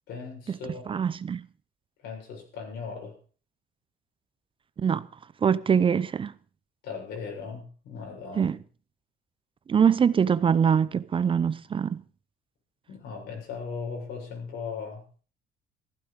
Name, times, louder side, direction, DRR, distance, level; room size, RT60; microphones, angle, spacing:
voice 1, 0.1-0.8 2.0-3.1 6.8-8.6 12.9-15.0, left 5 dB, 80° left, 6.8 m, -38 dB
voice 2, 0.9-1.5 4.8-5.1 5.4-6.3 8.4-8.6 9.7-12.0, right 7 dB, 30° right, 0.6 m, -23 dB
15.0 x 12.0 x 5.1 m
cardioid pair, 110°, 17 cm